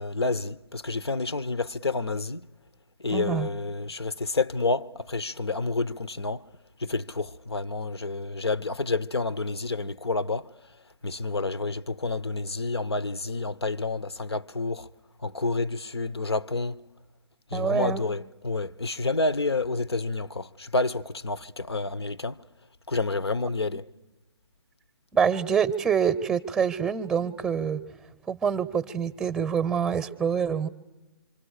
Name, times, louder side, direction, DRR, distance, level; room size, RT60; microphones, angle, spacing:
voice 1, 0.0-2.5 3.0-6.4 6.8-10.5 11.0-14.9 15.2-16.8 17.5-22.4 22.9-23.8, left 3 dB, 85° left, 0.8 m, -29 dB
voice 2, 3.1-3.5 17.5-18.0 25.1-27.8 28.3-30.7, right 7 dB, 5° right, 0.7 m, -26 dB
26.0 x 25.0 x 6.5 m
figure-of-eight pair, 140°, 13 cm